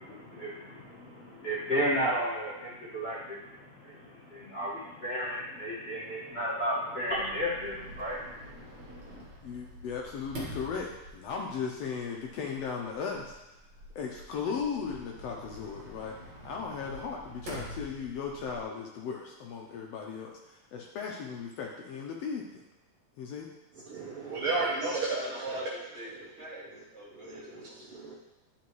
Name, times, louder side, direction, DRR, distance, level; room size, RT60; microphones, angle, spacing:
voice 1, 0.0-9.2, equal, 50° left, -10 dB, 0.7 m, -34 dB
Sliding door, 7.1-18.6, equal, 45° right, 1.7 m, -47 dB
voice 2, 9.4-13.4 13.9-16.1 16.4-22.6 23.2-23.5, left 6 dB, 85° left, -1 dB, 1.4 m, -37 dB
voice 3, 23.7-25.2 26.1-26.2 26.7-26.8 27.1-28.1, right 3 dB, 80° right, -4 dB, 1.2 m, -34 dB
voice 4, 24.5-25.6 25.9-27.8, right 2 dB, 5° left, -9 dB, 2.0 m, -41 dB
10.0 x 4.7 x 3.1 m, 0.95 s
omnidirectional pair, 3.7 m